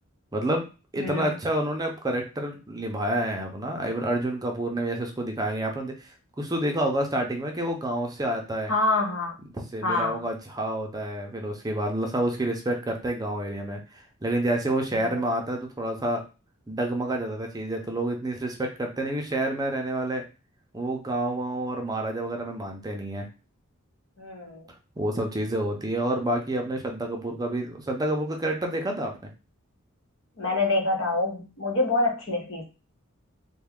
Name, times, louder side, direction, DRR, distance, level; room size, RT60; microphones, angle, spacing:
voice 1, 0.3-0.7 0.9-6.1 6.4-8.7 9.5-16.2 16.7-20.2 20.7-23.3 25.0-29.3, right 1 dB, 20° right, 2 dB, 0.5 m, -28 dB
voice 2, 1.0-1.4 8.7-9.4 9.8-10.2 14.9-15.2 24.2-24.6 30.4-32.6, left 2 dB, 70° left, 0 dB, 1.1 m, -26 dB
3.3 x 2.2 x 3.5 m, 0.31 s
head